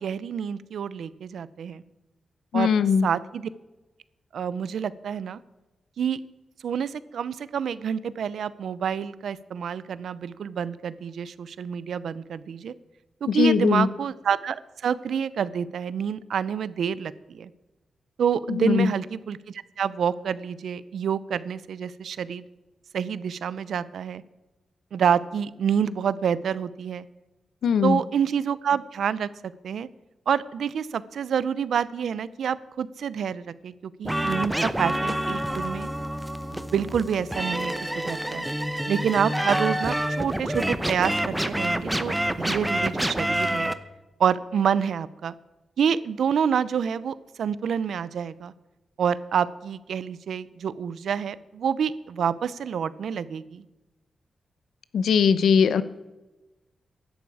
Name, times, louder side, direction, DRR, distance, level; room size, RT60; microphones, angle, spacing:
voice 1, 0.0-1.8 2.5-2.7 3.0-3.5 4.3-5.4 6.0-6.2 6.6-12.7 13.2-17.5 18.2-22.4 22.9-24.2 24.9-27.0 27.8-29.3 29.6-29.9 30.3-35.9 36.5-38.4 38.9-43.7 44.2-45.3 45.8-48.5 49.0-53.6, right 7 dB, 80° right, 17 dB, 0.6 m, -27 dB
voice 2, 2.5-3.1 13.3-13.9 18.5-18.9 27.6-28.0 54.9-55.8, left 6 dB, 85° left, 14 dB, 0.8 m, -20 dB
sound 1, 34.0-43.7, right 1 dB, 5° right, 0.8 m, -27 dB
15.5 x 11.5 x 4.8 m, 1.1 s
cardioid pair, 105°, 0 cm